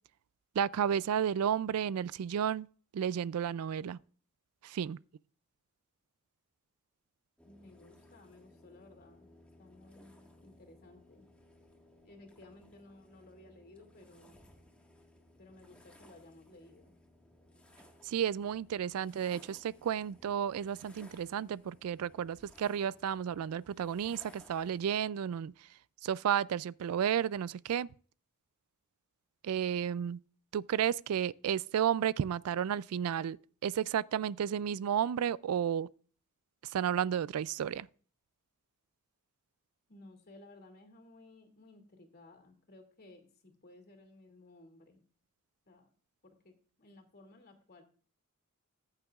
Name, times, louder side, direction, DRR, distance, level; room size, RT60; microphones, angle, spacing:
voice 1, 0.6-2.7 2.9-4.0 4.6-5.0 18.1-25.5 26.0-27.9 29.4-30.2 30.5-33.4 33.6-35.9 36.7-37.9, right 8 dB, 75° right, 0.3 m, -32 dB
voice 2, 7.4-9.3 9.6-11.3 12.0-14.4 15.4-16.9 39.9-45.0 45.7-45.9 46.2-47.8, left 2 dB, 45° left, 2.4 m, -57 dB
sound 1, 7.4-24.8, left 1 dB, 5° left, 1.6 m, -60 dB
14.0 x 8.8 x 2.4 m
head